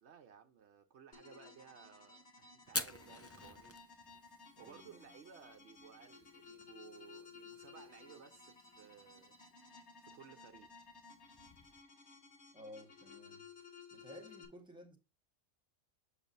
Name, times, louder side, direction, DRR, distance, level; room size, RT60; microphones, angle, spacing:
voice 1, 0.0-3.8 4.6-9.3 10.0-10.7, right 7 dB, 65° right, 0.9 m, -58 dB
sound 1, 1.1-14.5, left 5 dB, 60° left, 2.2 m, -57 dB
Fire, 2.6-11.8, left 1 dB, 20° left, 0.4 m, -49 dB
voice 2, 4.5-5.1 12.5-13.5 13.9-15.0, equal, 5° right, 1.3 m, -54 dB
7.1 x 6.7 x 2.6 m
omnidirectional pair, 1.3 m